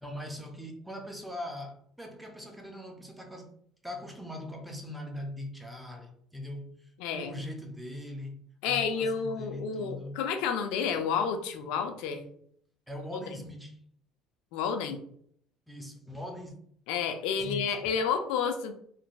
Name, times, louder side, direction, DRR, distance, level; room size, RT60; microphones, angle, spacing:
voice 1, 0.0-3.5 3.8-6.8 7.1-10.2 12.9-13.8 15.7-16.5 17.4-17.9, left 1 dB, 5° right, 0.5 m, -41 dB
voice 2, 7.0-7.3 8.6-12.2 13.1-13.2 14.5-15.0 16.9-18.7, left 6 dB, 85° left, 0.3 m, -30 dB
2.9 x 2.6 x 2.2 m
cardioid pair, 110°, 0 cm